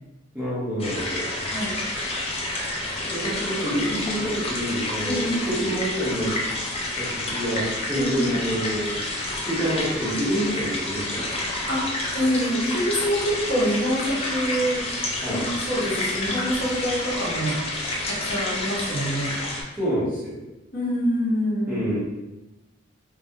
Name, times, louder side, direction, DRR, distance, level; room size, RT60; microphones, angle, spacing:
voice 1, 0.3-1.3 3.0-6.3 6.9-9.0 9.4-11.5 15.2-15.4 19.8-20.4 21.7-22.0, equal, 5° right, -11 dB, 0.8 m, -27 dB
sound 1, 0.8-19.6, left 2 dB, 30° left, 0.3 m, -29 dB
voice 2, 1.5-1.8 5.0-5.6 8.0-8.4 11.7-14.9 15.3-15.4 15.7-17.6 18.1-19.3 20.7-21.8, equal, 50° left, -7 dB, 0.8 m, -26 dB
2.2 x 2.1 x 2.7 m, 1.0 s
head